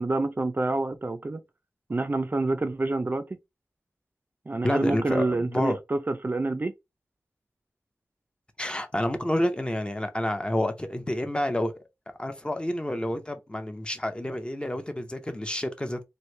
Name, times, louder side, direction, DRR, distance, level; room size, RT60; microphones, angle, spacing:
voice 1, 0.0-1.4 1.9-3.3 4.5-6.7, right 2 dB, 35° right, 0.4 m, -27 dB
voice 2, 4.6-5.8 8.6-11.7 12.2-16.0, left 1 dB, 15° left, 0.7 m, -29 dB
3.1 x 2.6 x 3.1 m
wide cardioid pair, 90°, 6 cm